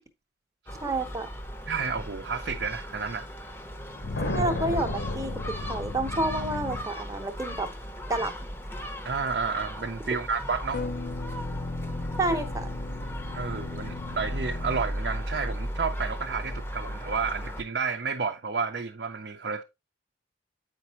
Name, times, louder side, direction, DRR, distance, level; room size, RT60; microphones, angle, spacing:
Gull seagull, 0.7-17.6, equal, 10° left, 0.7 m, -37 dB
voice 1, 0.8-1.3 4.3-7.7 8.1-8.5 12.2-12.7, right 2 dB, 20° right, 0.9 m, -29 dB
voice 2, 1.7-3.3 9.0-10.9 13.3-19.6, right 5 dB, 60° right, 0.6 m, -31 dB
sound 1, 3.7-6.2, left 1 dB, 75° left, 1.2 m, -33 dB
sound 2, 4.0-7.2 10.7-15.3, left 2 dB, 50° left, 0.5 m, -36 dB
8.3 x 5.2 x 2.9 m
head